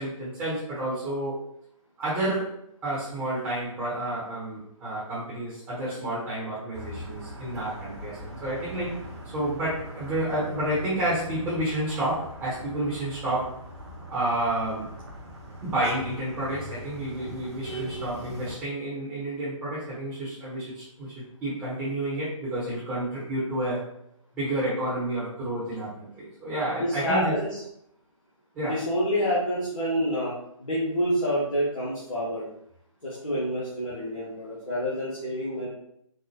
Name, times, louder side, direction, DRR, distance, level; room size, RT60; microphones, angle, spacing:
voice 1, 0.0-1.4 2.0-2.5 2.8-9.0 9.3-13.6 14.1-14.9 15.6-23.9 24.3-27.4 28.5-28.8, right 1 dB, 10° right, -9 dB, 0.8 m, -30 dB
sound 1, 6.7-18.6, right 1 dB, 50° right, 0.8 m, -40 dB
voice 2, 26.8-27.6 28.6-30.3 30.6-32.4 33.0-35.7, equal, 70° left, -9 dB, 1.2 m, -27 dB
4.5 x 2.0 x 2.9 m, 0.74 s
figure-of-eight pair, 140°, 18 cm